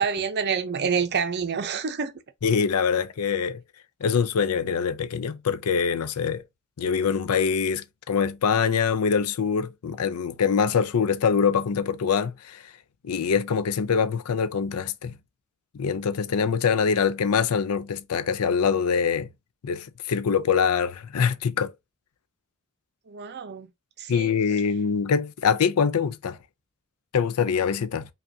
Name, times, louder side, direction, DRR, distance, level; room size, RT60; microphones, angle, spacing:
voice 1, 0.0-2.1 23.1-23.7 24.0-24.3, right 6 dB, 50° right, 0.6 m, -27 dB
voice 2, 2.4-3.6 4.0-6.4 6.8-12.7 13.0-15.1 15.7-19.3 19.6-21.7 24.1-26.4 27.1-28.1, left 6 dB, 80° left, 0.5 m, -24 dB
5.2 x 2.4 x 2.7 m
head